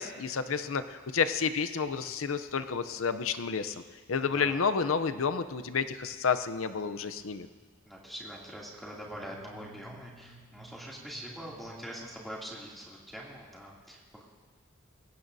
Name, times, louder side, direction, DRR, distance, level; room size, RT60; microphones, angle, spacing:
voice 1, 0.0-3.8 4.1-7.5, left 5 dB, 70° left, 11 dB, 0.6 m, -30 dB
voice 2, 7.9-14.2, equal, ahead, -4 dB, 2.7 m, -44 dB
sound 1, 8.8-13.0, right 1 dB, 55° right, 4.5 m, -55 dB
22.0 x 16.5 x 2.7 m, 1.5 s
head